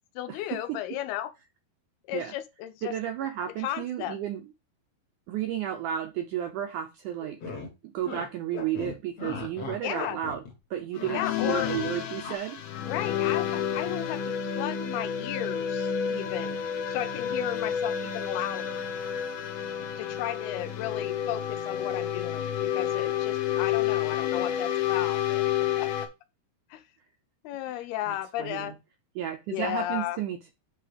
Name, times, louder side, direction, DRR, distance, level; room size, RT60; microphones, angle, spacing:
voice 1, 0.2-1.3 2.1-3.0 3.6-4.2 9.8-10.2 11.1-11.7 12.9-16.6 16.9-18.8 20.0-25.4 25.8-25.9 26.7-26.8 27.4-28.8 29.5-30.2, left 13 dB, 85° left, 2.8 m, -34 dB
voice 2, 2.8-4.4 5.3-7.4 7.8-10.4 10.7-12.6 27.7-27.8 28.1-28.7 29.2-30.5, right 11 dB, 80° right, 1.8 m, -32 dB
sound 1, 7.2-7.7 8.0-8.3 8.5-10.5 10.8-11.8 12.2-12.4, left 4 dB, 50° left, 2.2 m, -37 dB
sound 2, 11.0-26.1, left 9 dB, 65° left, 2.4 m, -30 dB
7.9 x 3.5 x 4.9 m
omnidirectional pair, 4.4 m